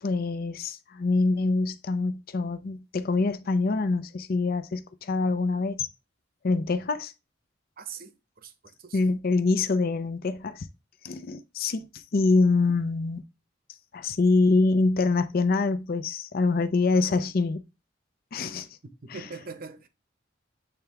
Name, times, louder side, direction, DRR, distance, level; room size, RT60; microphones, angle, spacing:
voice 1, 0.0-5.9 6.4-7.1 8.9-10.7 11.0-13.2 13.9-17.6 18.3-18.7, left 3 dB, 50° left, 0.5 m, -25 dB
voice 2, 7.8-9.1 19.1-19.9, right 5 dB, 50° right, 0.8 m, -42 dB
8.4 x 3.3 x 3.4 m
head